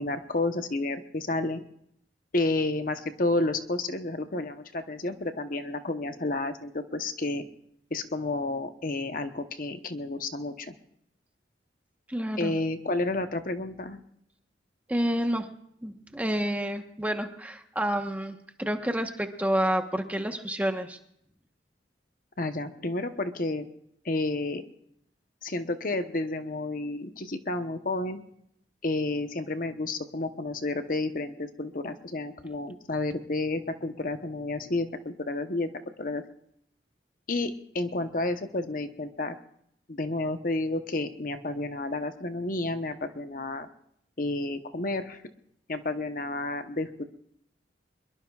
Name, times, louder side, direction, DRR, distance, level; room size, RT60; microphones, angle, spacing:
voice 1, 0.0-1.6 2.3-7.4 7.9-10.7 12.4-14.0 22.4-23.7 24.0-24.6 25.4-28.2 28.8-35.7 36.0-36.2 37.3-39.4 39.9-43.7 44.2-45.2 45.7-47.0, left 2 dB, 50° left, 8 dB, 1.0 m, -31 dB
voice 2, 12.1-12.5 14.9-15.5 15.8-21.0, equal, 10° right, 5 dB, 1.1 m, -29 dB
23.5 x 22.5 x 2.4 m, 0.72 s
head